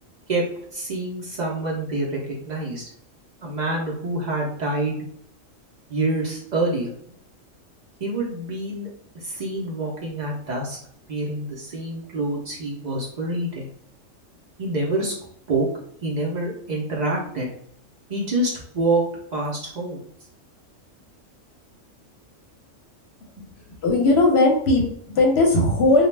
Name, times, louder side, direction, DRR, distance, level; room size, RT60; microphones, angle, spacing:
voice 1, 0.3-2.9 3.4-5.0 5.9-6.9 8.0-8.9 9.1-10.8 11.1-13.7 14.6-15.1 15.5-15.7 16.0-17.5 18.1-20.0, right 2 dB, 75° right, -3 dB, 0.4 m, -26 dB
voice 2, 23.8-26.1, left 2 dB, 60° left, 1 dB, 0.8 m, -18 dB
2.2 x 2.0 x 3.1 m, 0.65 s
omnidirectional pair, 1.4 m